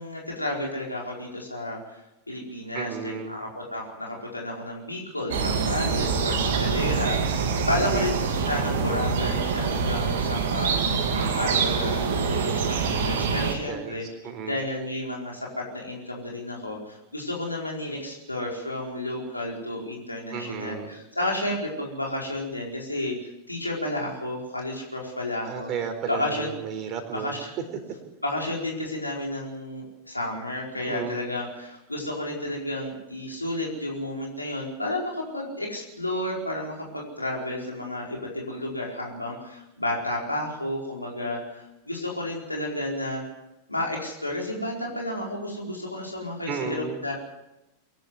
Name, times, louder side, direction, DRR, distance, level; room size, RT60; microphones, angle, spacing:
voice 1, 0.0-1.8 2.3-8.2 8.5-14.1 14.4-23.1 23.5-25.7 26.1-26.5 27.1-27.5 28.2-43.2 43.7-47.1, left 1 dB, 85° left, -2 dB, 4.6 m, -31 dB
voice 2, 2.7-3.4 7.8-8.1 13.7-14.6 20.3-20.9 25.5-27.3 30.7-31.2 46.5-47.0, right 6 dB, 35° right, 6 dB, 4.2 m, -33 dB
sound 1, 5.3-13.5, right 5 dB, 55° right, 2.9 m, -25 dB
23.5 x 12.0 x 9.5 m, 0.95 s
figure-of-eight pair, 90°, 0 cm